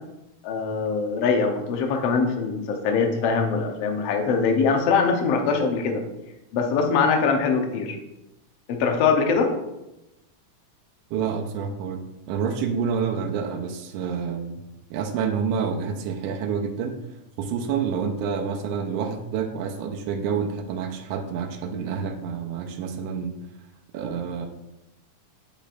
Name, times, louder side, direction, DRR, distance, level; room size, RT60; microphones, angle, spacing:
voice 1, 0.4-6.0 6.5-8.0 8.7-9.5, left 5 dB, 70° left, 3 dB, 1.6 m, -22 dB
voice 2, 11.1-14.6 14.9-17.0 17.4-23.4 23.9-24.5, right 6 dB, 85° right, 2 dB, 2.1 m, -28 dB
9.8 x 5.2 x 2.5 m, 0.92 s
omnidirectional pair, 3.6 m